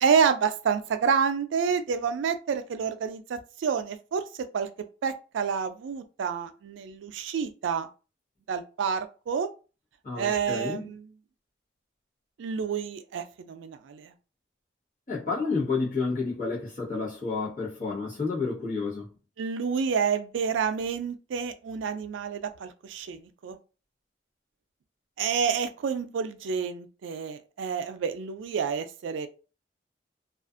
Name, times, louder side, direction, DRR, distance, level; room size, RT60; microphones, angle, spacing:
voice 1, 0.0-4.2 4.5-4.7 5.0-7.9 8.5-9.5 10.1-11.1 12.4-14.1 19.4-23.6 25.2-29.3, right 6 dB, 85° right, 0.3 m, -28 dB
voice 2, 10.0-10.9 15.1-19.1, left 4 dB, 45° left, 1.0 m, -30 dB
2.4 x 2.4 x 2.4 m
head